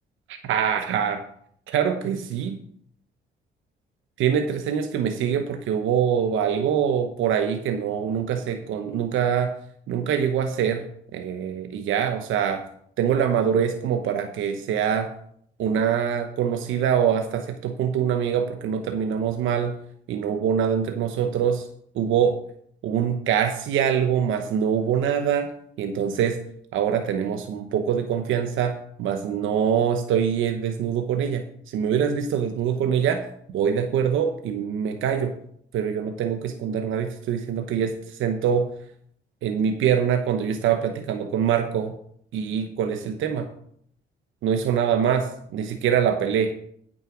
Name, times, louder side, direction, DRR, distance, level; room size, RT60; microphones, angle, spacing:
voice 1, 0.4-1.2 1.7-2.6 4.2-9.5 9.9-10.8 11.1-12.6 13.0-15.1 15.6-19.7 20.1-21.7 21.9-22.4 22.8-25.5 25.8-26.4 26.7-35.3 35.7-38.7 39.4-41.9 42.3-43.5 44.4-46.5, right 8 dB, 85° right, 6 dB, 1.0 m, -24 dB
9.2 x 6.7 x 6.1 m, 0.65 s
cardioid pair, 90°, 20 cm